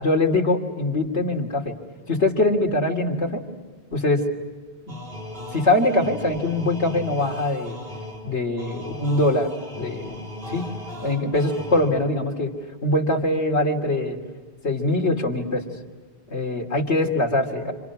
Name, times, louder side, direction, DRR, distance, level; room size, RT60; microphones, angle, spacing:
voice 1, 0.0-1.7 2.1-3.4 3.9-4.2 4.9-5.0 5.5-7.8 8.2-10.7 11.0-12.5 12.8-14.2 14.6-15.7 16.3-17.7, left 2 dB, 85° left, 1 dB, 3.3 m, -23 dB
sound 1, 4.9-12.3, left 1 dB, 60° right, 4.2 m, -38 dB
30.0 x 27.0 x 6.0 m, 1.4 s
omnidirectional pair, 1.1 m